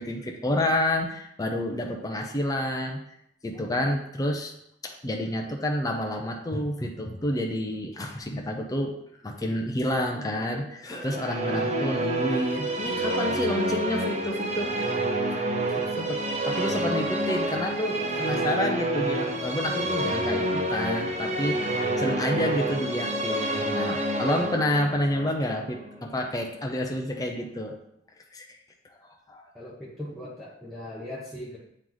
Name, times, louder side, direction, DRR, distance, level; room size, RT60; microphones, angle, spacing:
voice 1, 0.0-3.0 3.4-4.5 4.8-8.9 9.2-15.0 15.8-21.6 22.0-27.8 28.3-28.6 29.3-29.5, left 1 dB, 20° left, 1 dB, 0.6 m, -29 dB
Musical instrument, 10.9-26.3, right 1 dB, 35° right, 0.8 m, -28 dB
voice 2, 29.5-31.6, left 1 dB, ahead, -8 dB, 0.9 m, -39 dB
8.5 x 3.2 x 3.9 m, 0.75 s
head